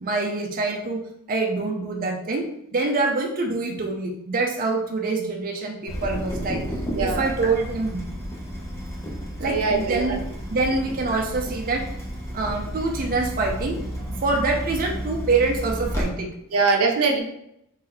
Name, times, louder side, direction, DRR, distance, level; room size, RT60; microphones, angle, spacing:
voice 1, 0.0-1.0 1.3-6.6 7.0-8.1 9.4-11.9 12.3-13.8 14.1-16.3, right 3 dB, 40° right, 1 dB, 0.5 m, -25 dB
Water tap faucet / Drip, 5.9-16.0, equal, 15° left, 0.8 m, -32 dB
voice 2, 6.9-7.3 9.4-10.2 16.5-17.2, right 4 dB, 85° right, 2 dB, 0.7 m, -22 dB
3.2 x 3.0 x 3.8 m, 0.78 s
head